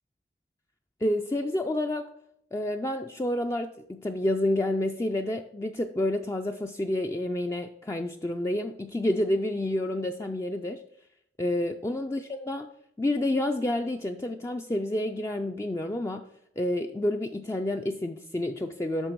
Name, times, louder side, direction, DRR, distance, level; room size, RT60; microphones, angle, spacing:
voice 1, 1.0-2.1 2.5-10.8 11.4-12.7 13.0-16.2 16.6-19.1, left 1 dB, 15° left, 4 dB, 0.3 m, -29 dB
8.9 x 6.4 x 4.5 m, 0.75 s
head